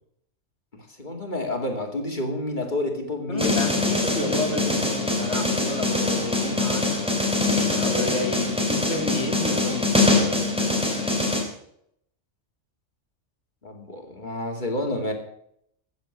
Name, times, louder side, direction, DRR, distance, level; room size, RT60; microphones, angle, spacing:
voice 1, 0.7-3.6 13.6-15.1, left 1 dB, 40° left, 2 dB, 2.7 m, -29 dB
voice 2, 3.3-10.4, left 2 dB, 65° left, 6 dB, 2.9 m, -31 dB
sound 1, 3.4-11.4, left 2 dB, 5° right, 3.3 m, -23 dB
15.0 x 7.6 x 8.0 m, 0.72 s
omnidirectional pair, 1.3 m